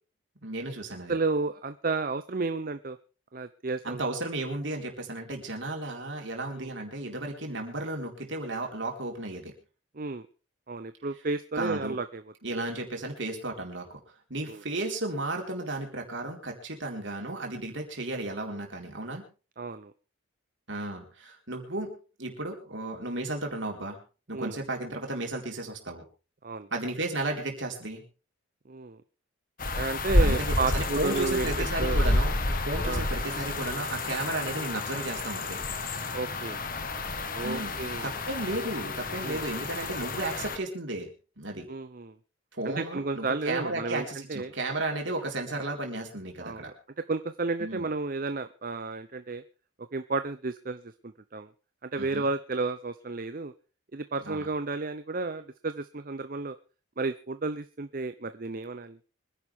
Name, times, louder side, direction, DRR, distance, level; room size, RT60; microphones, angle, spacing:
voice 1, 0.4-1.1 3.8-9.5 11.6-12.0 12.4-14.0 14.3-19.3 20.7-21.9 22.2-24.0 24.3-26.0 26.7-28.0 30.2-35.6 37.4-37.7 38.0-41.1 41.4-41.7 42.5-46.7 47.6-47.9 52.0-52.3 54.2-54.5, right 2 dB, 60° right, 1 dB, 4.4 m, -34 dB
voice 2, 1.1-3.0 3.3-4.0 6.6-6.7 9.9-10.3 10.7-12.2 14.5-14.6 19.6-19.9 24.3-24.6 26.4-26.7 28.7-29.0 29.7-32.0 32.8-33.0 36.1-36.6 37.3-38.1 39.2-39.4 41.7-42.1 42.6-44.5 46.4-49.4 49.8-51.5 51.8-53.5 53.9-56.6 57.0-59.0, right 3 dB, 40° right, 11 dB, 0.6 m, -32 dB
sound 1, 29.6-40.6, left 2 dB, 40° left, 1.5 m, -30 dB
25.0 x 11.0 x 3.6 m, 0.35 s
head